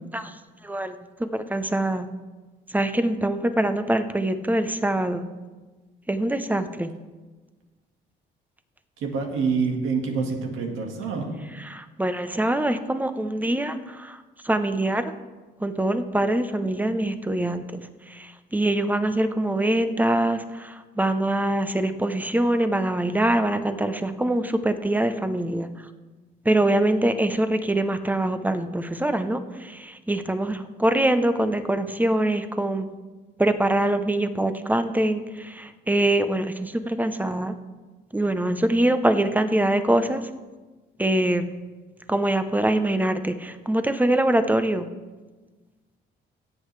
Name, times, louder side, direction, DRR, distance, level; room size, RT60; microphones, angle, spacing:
voice 1, 0.1-2.1 2.7-5.2 6.1-6.9 11.5-15.1 15.6-17.8 18.1-25.9 26.4-32.9 33.4-37.5 38.1-40.3 41.0-41.5 42.1-44.9, right 1 dB, 10° right, 10 dB, 0.8 m, -24 dB
voice 2, 9.0-11.3, right 5 dB, 90° right, 2 dB, 1.8 m, -26 dB
17.0 x 8.0 x 3.3 m, 1.3 s
cardioid pair, 90°, 20 cm